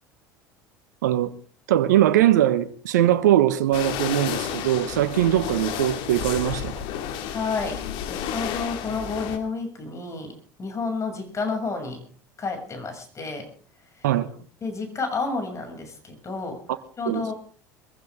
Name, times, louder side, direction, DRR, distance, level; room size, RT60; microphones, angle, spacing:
voice 1, 1.0-1.3 1.7-6.7 14.0-14.3 17.1-17.2, right 12 dB, 75° right, 1.2 m, -21 dB
sound 1, 3.7-9.4, left 9 dB, 60° left, 2.3 m, -31 dB
voice 2, 7.2-12.1 12.4-13.5 14.0-14.1 14.6-16.6 17.0-17.3, left 4 dB, 30° left, 7.0 m, -30 dB
22.5 x 15.5 x 3.7 m
hypercardioid pair, 75°, 10 cm